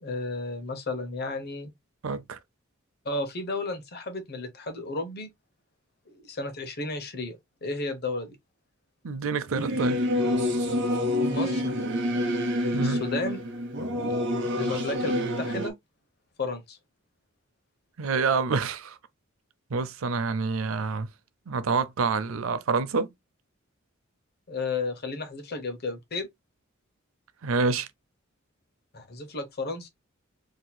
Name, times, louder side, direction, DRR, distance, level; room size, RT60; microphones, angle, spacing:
voice 1, 0.0-1.7 3.0-5.3 6.1-8.4 11.3-11.8 12.8-13.4 14.6-15.7 16.4-16.8 24.5-26.3 28.9-29.9, left 3 dB, 50° left, 0.9 m, -33 dB
voice 2, 2.0-2.4 9.0-10.0 12.7-13.0 18.0-19.0 19.7-21.1 21.5-23.1 27.4-27.9, right 4 dB, 85° right, 0.5 m, -27 dB
Singing / Musical instrument, 9.5-15.7, left 1 dB, 60° right, 0.9 m, -27 dB
4.2 x 2.8 x 2.2 m
head